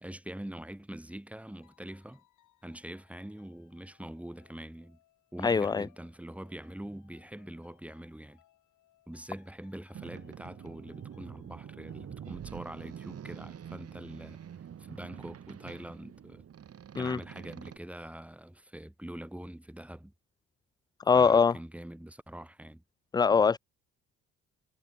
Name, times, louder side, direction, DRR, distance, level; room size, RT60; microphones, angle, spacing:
voice 1, 0.0-2.2 2.6-5.0 5.3-8.4 9.1-14.4 14.8-16.4 17.0-20.1 21.1-22.8, right 1 dB, 5° right, 2.1 m, -44 dB
sound 1, 1.3-12.3, left 13 dB, 80° left, 7.2 m, -68 dB
voice 2, 5.4-5.9 17.0-17.2 21.1-21.6 23.1-23.6, left 5 dB, 15° left, 0.3 m, -22 dB
Boat Water vehicle, 9.9-17.8, right 9 dB, 50° right, 1.9 m, -46 dB
cardioid pair, 90°, 30 cm